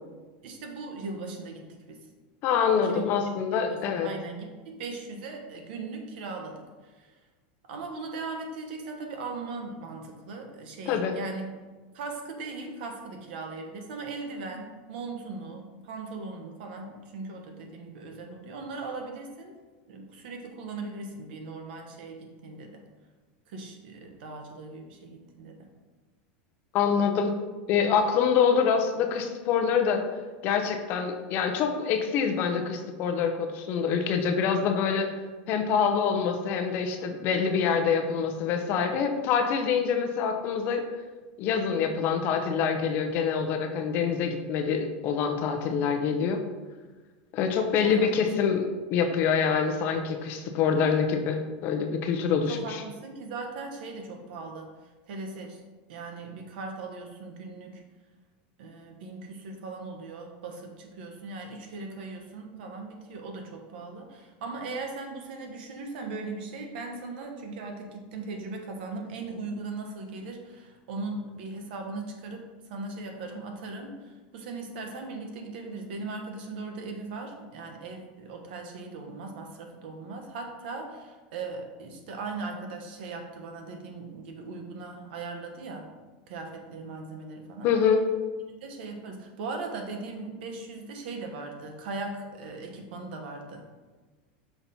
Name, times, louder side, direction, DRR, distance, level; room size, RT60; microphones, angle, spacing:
voice 1, 0.4-2.1 2.8-3.1 3.5-7.1 7.7-11.5 11.9-19.5 19.9-22.8 23.5-25.7 47.8-48.1 52.3-54.7 55.1-55.6 55.9-57.8 58.6-85.9 86.3-87.7 88.6-93.7, right 3 dB, 70° right, 3 dB, 1.1 m, -39 dB
voice 2, 2.4-4.1 10.9-11.1 26.7-27.3 27.7-30.0 30.4-35.1 35.5-40.8 41.4-46.4 47.3-52.8 87.6-88.0, left 6 dB, 40° left, 5 dB, 0.6 m, -25 dB
5.8 x 4.1 x 4.2 m, 1.3 s
supercardioid pair, 160°, 6 cm